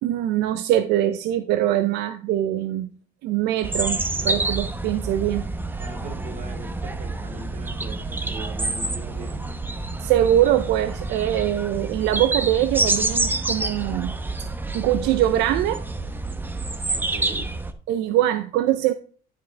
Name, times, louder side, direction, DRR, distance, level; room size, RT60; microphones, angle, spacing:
voice 1, 0.0-2.9 3.2-5.5 10.0-14.2 14.7-15.8 17.9-18.9, right 12 dB, 90° right, 10 dB, 0.5 m, -22 dB
sound 1, 3.6-17.7, right 2 dB, 10° right, 0.8 m, -28 dB
voice 2, 5.8-9.5 16.9-17.5, right 2 dB, 50° right, 1 dB, 3.1 m, -39 dB
11.5 x 5.3 x 3.3 m, 0.43 s
cardioid pair, 110°, 17 cm